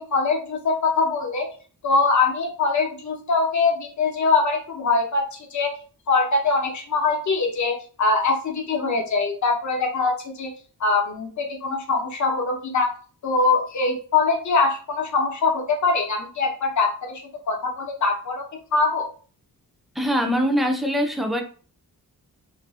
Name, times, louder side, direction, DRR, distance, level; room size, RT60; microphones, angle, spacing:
voice 1, 0.0-1.5 1.8-5.7 6.1-10.5 10.8-12.9 13.2-17.2 17.5-18.5 18.7-19.1, left 4 dB, 50° left, 2 dB, 0.7 m, -23 dB
voice 2, 20.0-21.4, equal, ahead, 4 dB, 0.3 m, -22 dB
2.6 x 2.4 x 2.3 m, 0.39 s
wide cardioid pair, 105°, 37 cm